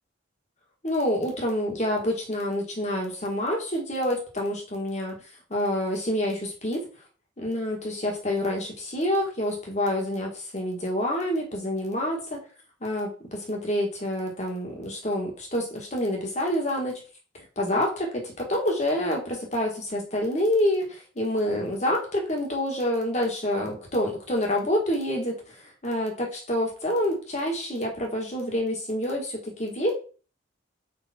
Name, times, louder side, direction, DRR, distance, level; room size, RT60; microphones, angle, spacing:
voice 1, 0.8-5.1 5.5-6.8 7.4-12.4 12.8-17.0 17.3-29.9, left 1 dB, 35° left, 0 dB, 1.8 m, -27 dB
5.4 x 4.0 x 4.4 m, 0.38 s
head